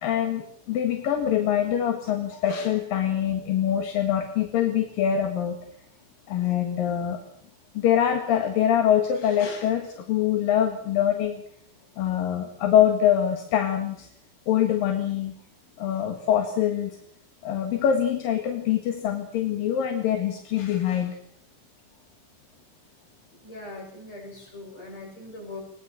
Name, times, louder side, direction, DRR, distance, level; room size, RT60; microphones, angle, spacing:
voice 1, 0.0-5.6 6.3-7.2 7.7-11.4 12.0-14.1 14.5-15.3 15.8-17.0 17.4-21.2, left 10 dB, 60° left, 6 dB, 3.0 m, -24 dB
voice 2, 23.3-25.6, left 2 dB, 35° left, 2 dB, 9.0 m, -41 dB
22.5 x 21.0 x 7.7 m, 0.63 s
omnidirectional pair, 5.4 m